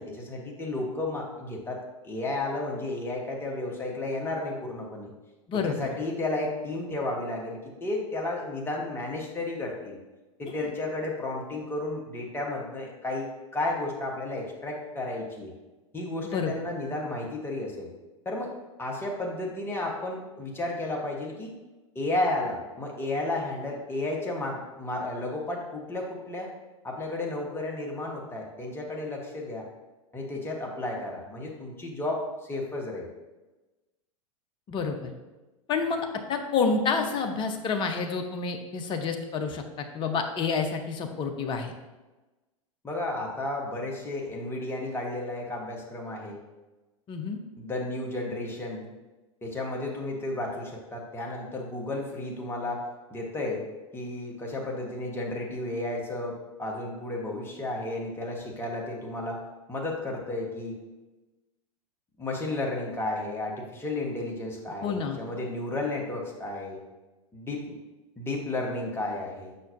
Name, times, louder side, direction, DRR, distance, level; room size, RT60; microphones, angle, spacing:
voice 1, 0.0-5.1 5.5-10.0 10.4-13.3 13.5-15.5 15.9-17.9 18.2-18.5 18.8-21.5 21.9-26.5 26.8-29.7 30.1-33.1 42.8-46.4 47.5-48.9 49.4-52.8 53.1-53.7 53.9-59.4 59.7-60.8 62.2-66.8 67.3-67.7 68.2-69.5, left 2 dB, 15° left, -1 dB, 1.3 m, -33 dB
voice 2, 5.5-5.9 10.6-10.7 16.2-16.5 34.7-35.1 35.7-41.7 47.1-47.4 64.8-65.2, left 5 dB, 30° left, 5 dB, 0.7 m, -29 dB
6.4 x 5.7 x 2.6 m, 1.1 s
figure-of-eight pair, 90°, 17 cm